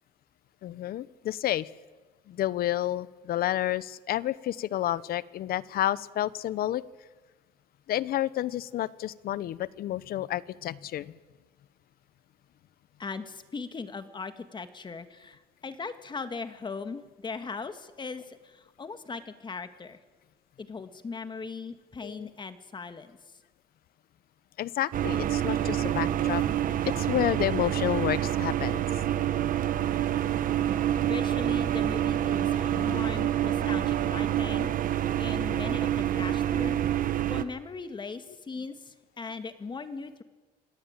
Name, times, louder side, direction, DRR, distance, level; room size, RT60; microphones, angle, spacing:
voice 1, 0.6-1.7 2.3-6.8 7.9-11.1 22.0-22.3 24.6-26.4 26.9-28.8 32.7-33.0 33.6-33.8, left 13 dB, 65° left, 19 dB, 0.9 m, -30 dB
voice 2, 13.0-20.0 20.6-23.2 31.0-34.7 35.2-40.2, left 4 dB, 25° left, 9 dB, 2.1 m, -39 dB
sound 1, 24.9-37.4, right 11 dB, 55° right, 1.3 m, -27 dB
26.5 x 18.5 x 9.1 m, 1.2 s
cardioid pair, 110°, 17 cm